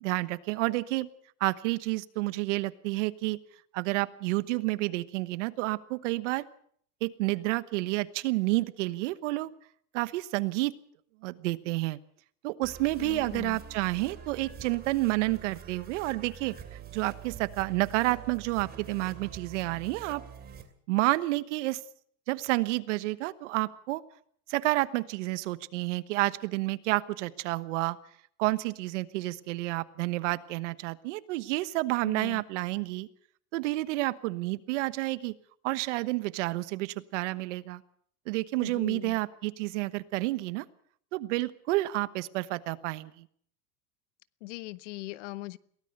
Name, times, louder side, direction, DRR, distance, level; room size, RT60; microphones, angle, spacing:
voice 1, 0.0-1.1 1.4-3.4 3.7-6.4 7.0-9.5 9.9-10.7 11.2-12.0 12.4-20.2 20.9-21.8 22.3-24.0 24.5-28.0 28.4-33.1 33.5-35.3 35.6-37.8 38.3-40.6 41.1-43.2, right 20 dB, 75° right, 15 dB, 1.2 m, -30 dB
sound 1, 12.6-20.6, right 8 dB, 25° right, 2.7 m, -46 dB
voice 2, 13.0-13.6 32.0-32.4 38.6-39.2 44.4-45.6, left 20 dB, 75° left, 17 dB, 1.0 m, -40 dB
23.0 x 17.0 x 6.7 m, 0.63 s
supercardioid pair, 140°, 36 cm